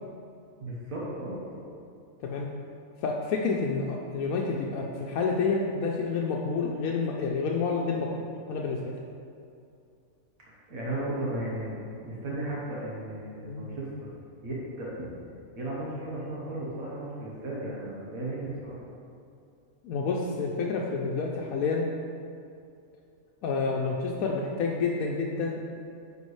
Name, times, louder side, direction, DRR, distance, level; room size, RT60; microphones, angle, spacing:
voice 1, 0.6-1.6 10.7-14.1 14.4-15.1 15.6-18.8, right 1 dB, 90° right, -6 dB, 1.6 m, -35 dB
voice 2, 3.0-8.1 8.5-9.0 13.4-13.7 19.8-21.9 23.4-25.6, left 4 dB, 90° left, -1 dB, 1.1 m, -29 dB
9.5 x 5.2 x 3.2 m, 2.5 s
omnidirectional pair, 1.4 m